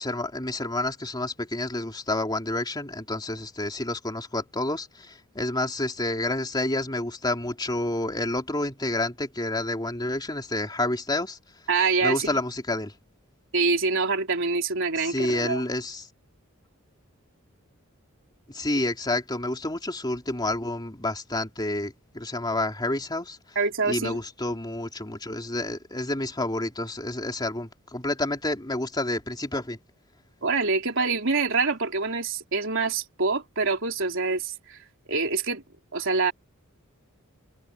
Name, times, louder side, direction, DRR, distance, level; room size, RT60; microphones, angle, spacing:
voice 1, 0.0-11.4 12.0-12.9 15.0-16.1 18.5-23.4 23.9-29.8, left 2 dB, 20° left, 3.3 m, -29 dB
voice 2, 11.7-12.4 13.5-15.6 23.6-24.2 30.4-34.8 35.1-35.6 35.9-36.3, right 4 dB, 65° right, 3.9 m, -25 dB
head